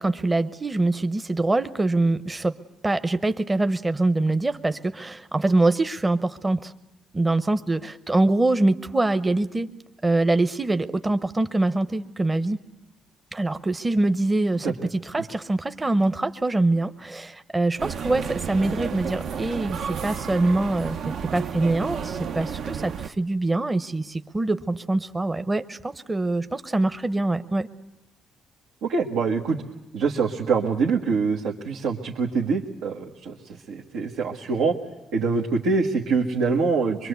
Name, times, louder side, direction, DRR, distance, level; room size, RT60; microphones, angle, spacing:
voice 1, 0.0-2.6 2.8-6.7 7.1-9.7 10.0-12.6 13.3-27.7, right 2 dB, 20° right, 10 dB, 0.8 m, -24 dB
sound 1, 17.8-23.1, right 7 dB, 70° right, 0.8 m, -32 dB
voice 2, 28.8-29.6 29.9-33.4 33.7-34.7 35.1-37.1, right 4 dB, 90° right, -1 dB, 1.5 m, -24 dB
24.0 x 23.0 x 8.2 m, 0.95 s
cardioid pair, 90°, 0 cm